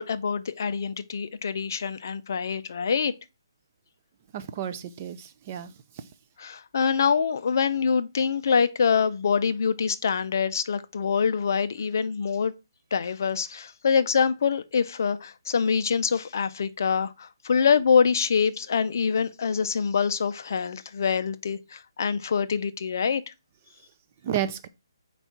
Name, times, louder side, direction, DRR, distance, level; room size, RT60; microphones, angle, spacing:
voice 1, 0.0-3.1 6.4-12.5 12.9-23.2, left 6 dB, 45° left, 0.5 m, -25 dB
voice 2, 4.3-5.7 24.2-24.7, right 10 dB, 20° right, 0.3 m, -31 dB
4.6 x 4.0 x 5.7 m
hypercardioid pair, 170°, 2 cm